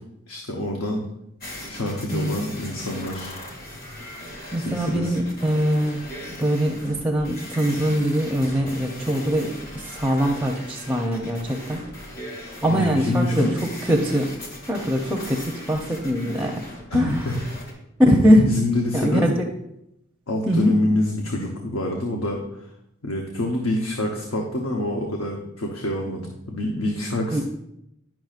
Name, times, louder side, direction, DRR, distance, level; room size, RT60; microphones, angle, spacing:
voice 1, 0.3-1.0 1.7-3.4 4.6-5.1 12.7-13.5 16.9-17.3 18.5-19.3 20.3-22.4 23.0-27.4, left 1 dB, 80° left, 0 dB, 0.9 m, -26 dB
sound 1, 1.4-17.7, left 1 dB, 45° left, 2.1 m, -39 dB
voice 2, 4.5-6.0 6.3-11.8 12.6-13.5 13.8-14.3 14.7-16.5 16.9-17.2 18.0-18.5 18.9-19.3 20.5-20.8 27.3-27.4, equal, 5° right, 2 dB, 0.5 m, -22 dB
10.5 x 6.0 x 2.4 m, 0.82 s
head